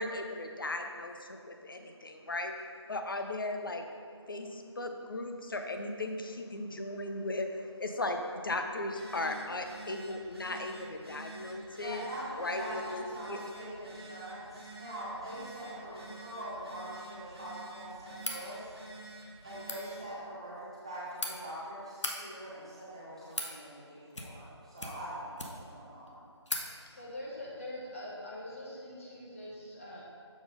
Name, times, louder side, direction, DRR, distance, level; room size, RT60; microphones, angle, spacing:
voice 1, 0.0-2.5 2.9-3.8 4.3-12.0 12.4-12.6 12.9-13.0 13.3-13.4, left 2 dB, 50° left, 5 dB, 0.6 m, -37 dB
Telephone, 8.8-20.1, right 2 dB, 55° right, 1.3 m, -49 dB
voice 2, 11.7-18.7 19.4-26.3, right 1 dB, 10° right, -9 dB, 0.6 m, -43 dB
sound 1, 18.2-18.4 19.5-19.8 20.8-21.3 21.9-22.1 22.9-23.5 24.1-24.5 24.8-25.7 26.1-26.2 26.4-26.7, left 1 dB, 85° left, 1.1 m, -38 dB
voice 3, 26.9-30.0, left 1 dB, 30° left, -5 dB, 1.2 m, -43 dB
7.1 x 3.9 x 5.1 m, 2.3 s
figure-of-eight pair, 170°, 15 cm